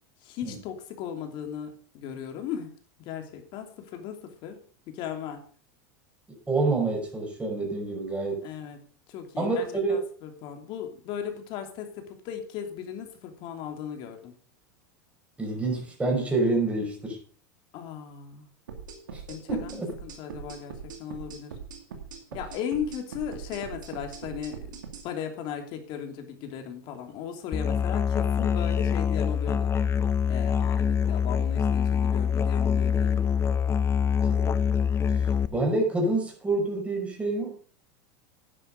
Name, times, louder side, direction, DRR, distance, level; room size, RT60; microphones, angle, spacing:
voice 1, 0.2-2.7 3.0-4.6 4.9-5.4 8.4-8.8 9.1-14.3 17.7-18.5 19.3-21.5 22.3-24.8 25.0-29.7 30.3-33.3, left 8 dB, 55° left, 5 dB, 3.0 m, -37 dB
voice 2, 6.5-8.4 9.4-10.0 15.4-17.2 19.1-19.2 19.5-19.9 34.3-34.5 35.5-37.5, right 2 dB, 10° right, 0 dB, 5.6 m, -27 dB
sound 1, 18.7-25.1, right 6 dB, 90° right, 2.4 m, -41 dB
Musical instrument, 27.5-35.5, left 7 dB, 25° left, 0.9 m, -25 dB
10.5 x 9.9 x 5.3 m, 0.42 s
hypercardioid pair, 110°, 10 cm